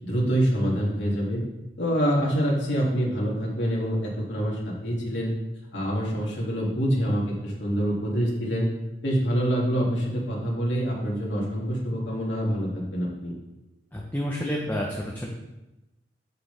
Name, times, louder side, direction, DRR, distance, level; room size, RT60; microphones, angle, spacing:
voice 1, 0.0-1.4 1.8-5.3 5.7-8.7 9.0-13.3, equal, 75° left, -4 dB, 2.4 m, -26 dB
voice 2, 13.9-15.3, equal, 10° left, -2 dB, 0.8 m, -29 dB
8.0 x 7.8 x 3.4 m, 0.99 s
head